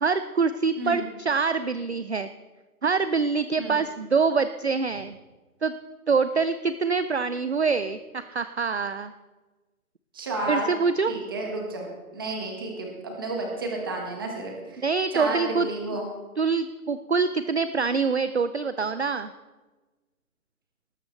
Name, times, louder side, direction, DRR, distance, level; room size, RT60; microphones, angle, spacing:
voice 1, 0.0-2.3 2.8-5.2 5.6-5.7 6.1-9.1 10.5-11.1 14.8-15.7 16.4-19.3, right 5 dB, 50° right, 12 dB, 0.4 m, -25 dB
voice 2, 10.1-10.7 11.1-11.9 12.1-14.8 15.1-16.1, right 2 dB, 15° right, 0 dB, 1.4 m, -31 dB
18.5 x 13.5 x 3.2 m, 1.2 s
hypercardioid pair, 180°, 46 cm